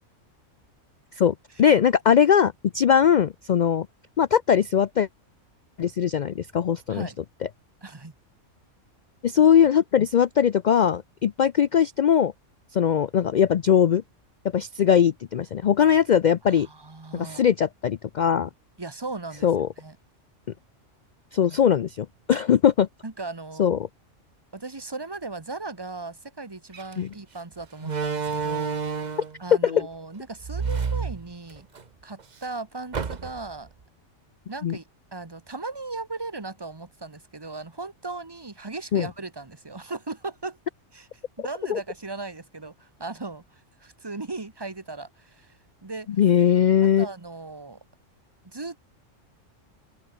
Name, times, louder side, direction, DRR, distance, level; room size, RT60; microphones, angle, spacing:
voice 1, 1.2-3.9 4.2-5.1 5.8-7.1 9.2-12.3 12.7-14.0 14.5-16.7 17.1-18.5 19.4-19.7 21.3-22.9 23.6-23.8 27.0-27.1 29.6-29.9 34.6-34.8 38.9-39.1 41.7-41.8 46.2-47.1, left 8 dB, 60° left, 0.5 m, -20 dB
voice 2, 7.8-8.1 16.5-17.5 18.8-19.5 19.8-20.0 23.0-23.7 24.5-28.8 29.4-31.7 32.0-33.7 34.5-34.8 35.1-40.6 40.9-41.1 41.4-46.1 46.8-47.8 48.4-48.8, right 3 dB, 20° right, 1.3 m, -37 dB
Slam, 26.7-26.9 27.8-29.4 30.4-31.8 32.2-32.3 32.9-33.6, right 5 dB, 40° right, 1.1 m, -29 dB
omnidirectional pair, 1.3 m